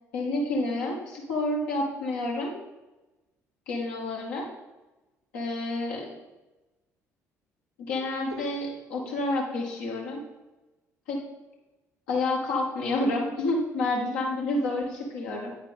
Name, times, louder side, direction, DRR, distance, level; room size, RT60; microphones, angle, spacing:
voice 1, 0.1-2.5 3.7-4.5 5.3-6.1 7.8-10.2 11.1-11.3 12.1-15.5, left 2 dB, 70° left, -2 dB, 1.9 m, -29 dB
9.7 x 7.3 x 3.7 m, 1.1 s
figure-of-eight pair, 50°, 8 cm